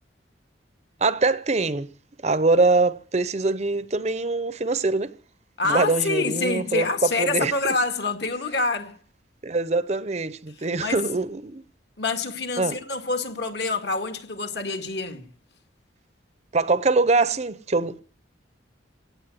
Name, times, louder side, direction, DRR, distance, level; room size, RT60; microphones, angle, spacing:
voice 1, 1.0-1.9 2.2-5.1 5.7-7.5 9.4-11.6 12.6-12.8 16.5-18.0, right 3 dB, 35° right, 0.7 m, -23 dB
voice 2, 5.6-9.0 10.8-11.0 12.0-15.3, left 3 dB, 60° left, 2.1 m, -26 dB
17.5 x 8.2 x 9.5 m
head